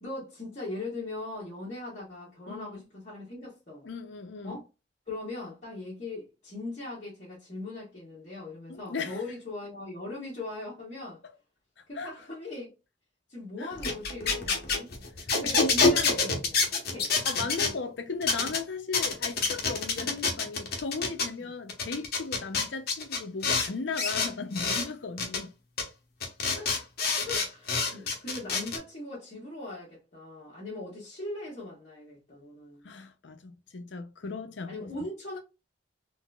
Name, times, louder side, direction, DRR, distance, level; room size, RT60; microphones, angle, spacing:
voice 1, 0.0-3.9 4.4-4.6 5.1-11.2 11.9-12.7 13.3-14.9 15.3-17.1 21.4-21.5 26.5-26.9 27.2-32.9 34.7-35.4, left 2 dB, 40° left, 1.3 m, -40 dB
voice 2, 2.5-2.8 3.8-4.6 8.7-9.2 12.0-12.1 13.6-13.7 15.4-16.3 17.2-25.5 27.9-28.0 32.8-34.9, left 4 dB, 75° left, 0.6 m, -36 dB
sound 1, 13.7-17.7 18.2-18.6 18.9-21.3 21.7-23.7 24.0-24.9 25.2-25.4 25.8-25.9 26.2-28.8, left 4 dB, 60° left, 0.9 m, -27 dB
3.9 x 2.6 x 2.3 m
head